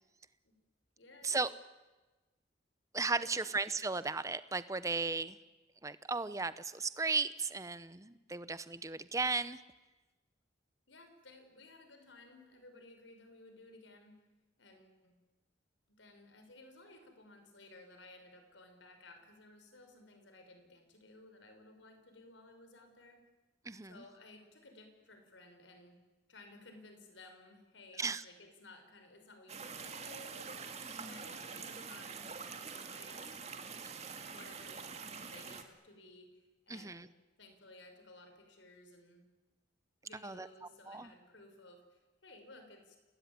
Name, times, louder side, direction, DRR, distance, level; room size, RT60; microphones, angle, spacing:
voice 1, 1.0-1.5 3.2-3.5 10.9-14.3 14.6-15.2 15.9-23.2 23.9-26.0 26.3-30.6 31.0-32.1 32.9-33.4 34.2-37.1 37.4-39.2 40.0-43.0, left 2 dB, 80° left, 6 dB, 5.4 m, -57 dB
voice 2, 2.9-5.4 5.8-9.6 23.7-23.9 28.0-28.2 30.8-31.2 36.7-37.1 40.2-40.5 40.9-41.1, right 3 dB, 15° right, 14 dB, 0.8 m, -35 dB
sound 1, 29.5-35.6, right 5 dB, 35° right, 2.1 m, -45 dB
28.0 x 19.5 x 9.6 m, 1.2 s
head